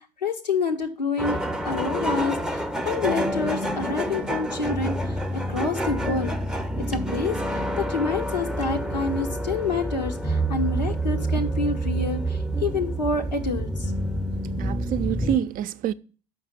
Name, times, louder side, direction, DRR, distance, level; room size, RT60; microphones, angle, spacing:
voice 1, 0.0-1.4 1.6-5.2 5.5-6.3 6.9-13.9, left 4 dB, 90° left, 1.1 m, -28 dB
sound 1, 1.2-15.4, right 1 dB, 5° right, 0.7 m, -28 dB
voice 2, 14.4-15.9, right 10 dB, 40° right, 0.5 m, -27 dB
6.5 x 5.6 x 6.9 m
figure-of-eight pair, 65°, 21 cm